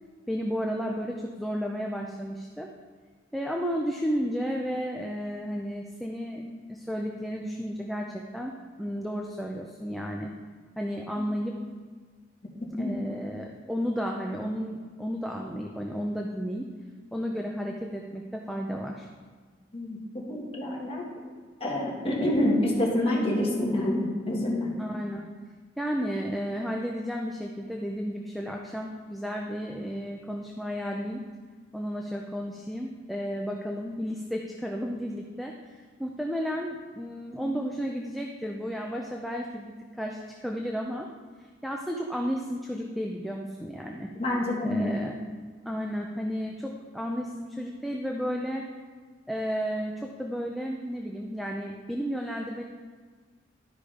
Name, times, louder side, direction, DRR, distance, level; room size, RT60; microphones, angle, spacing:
voice 1, 0.3-2.7 3.3-6.4 6.7-8.5 8.8-10.3 10.8-11.5 12.7-16.7 17.1-19.1 24.8-25.2 25.8-31.2 31.7-41.1 41.6-44.1 44.6-45.2 45.6-48.6 49.3-52.6, equal, ahead, 0 dB, 0.5 m, -33 dB
voice 2, 19.7-21.0 21.6-24.7 44.2-44.9, left 1 dB, 30° left, -3 dB, 1.8 m, -27 dB
12.5 x 5.1 x 5.0 m, 1.5 s
head